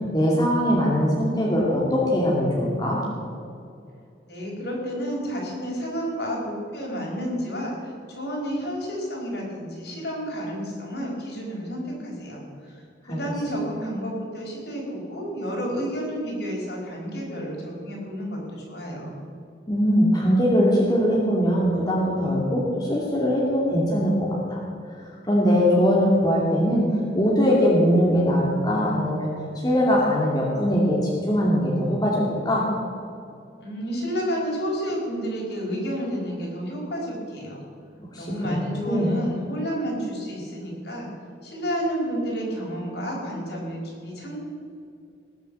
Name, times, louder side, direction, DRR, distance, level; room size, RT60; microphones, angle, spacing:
voice 1, 0.1-3.0 13.1-13.2 19.7-24.6 25.2-26.9 27.1-29.3 29.6-31.0 31.3-32.6 38.1-38.6 38.8-39.1, equal, 20° left, -4 dB, 2.5 m, -21 dB
voice 2, 4.3-19.1 33.6-37.6 38.2-41.1 41.4-44.4, equal, 60° left, -2 dB, 4.8 m, -30 dB
19.5 x 8.1 x 7.6 m, 2.5 s
head